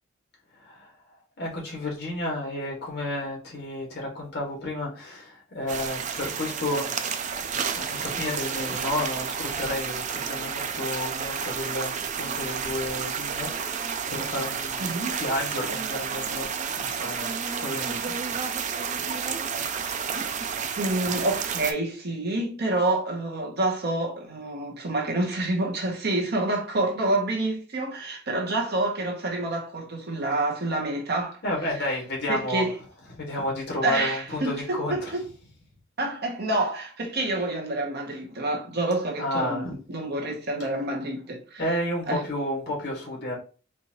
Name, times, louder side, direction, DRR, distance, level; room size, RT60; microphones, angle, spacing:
voice 1, 0.6-0.9 1.4-6.9 7.7-16.5 16.8-17.3 17.6-18.2 31.4-32.7 33.2-35.1 39.2-39.7 41.6-43.4, left 1 dB, 55° left, 1.7 m, -31 dB
sound 1, 5.7-21.7, right 6 dB, 35° right, 0.4 m, -31 dB
voice 2, 14.8-15.2 20.8-31.4 31.7-31.9 32.3-32.8 33.8-35.2 36.0-41.6 42.1-42.2, right 2 dB, 50° right, 1.1 m, -28 dB
4.4 x 2.6 x 3.0 m
head